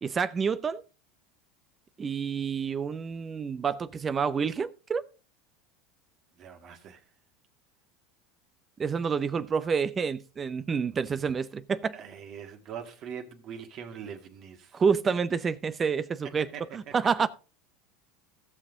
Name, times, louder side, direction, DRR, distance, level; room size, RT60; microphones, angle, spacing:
voice 1, 0.0-0.8 2.0-5.0 8.8-11.9 14.7-16.5 16.7-17.3, right 6 dB, 25° right, 0.6 m, -28 dB
voice 2, 6.4-7.0 11.9-14.8 16.2-17.0, right 7 dB, 50° right, 1.8 m, -42 dB
16.5 x 6.1 x 3.9 m
supercardioid pair, 105°, 0 cm